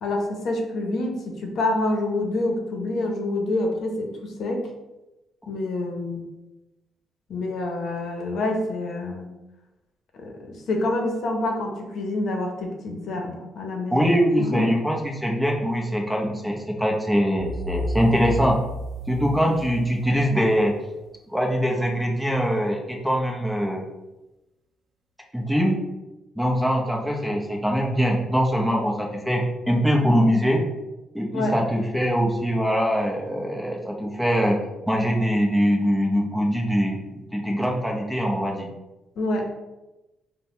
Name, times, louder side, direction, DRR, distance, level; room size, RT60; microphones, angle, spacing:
voice 1, 0.0-4.7 5.5-6.2 7.3-9.3 10.2-14.1 14.4-14.8 31.3-31.5 39.2-39.5, left 2 dB, 65° left, 2 dB, 0.8 m, -27 dB
voice 2, 13.9-18.6 19.1-20.7 21.3-23.9 25.3-25.8 26.4-30.7 31.1-34.6 34.9-37.0 37.3-38.7, equal, 5° right, -1 dB, 0.7 m, -23 dB
sound 1, 17.4-20.2, right 1 dB, 40° right, 0.5 m, -32 dB
4.0 x 2.2 x 4.1 m, 1.0 s
cardioid pair, 90°, 0 cm